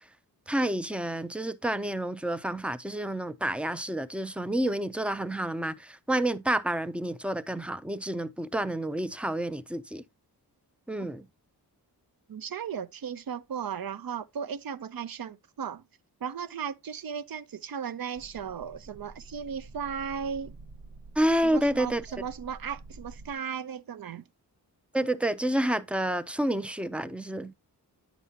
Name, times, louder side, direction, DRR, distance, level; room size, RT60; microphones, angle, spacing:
voice 1, 0.5-10.0 10.9-11.3 21.2-22.1 24.9-27.5, right 1 dB, 5° right, 0.5 m, -29 dB
voice 2, 12.3-15.8 16.2-20.5 21.4-24.2, right 7 dB, 60° right, 0.7 m, -36 dB
sound 1, 18.1-23.4, right 3 dB, 80° right, 1.4 m, -48 dB
10.0 x 7.1 x 2.8 m
wide cardioid pair, 140°, 40 cm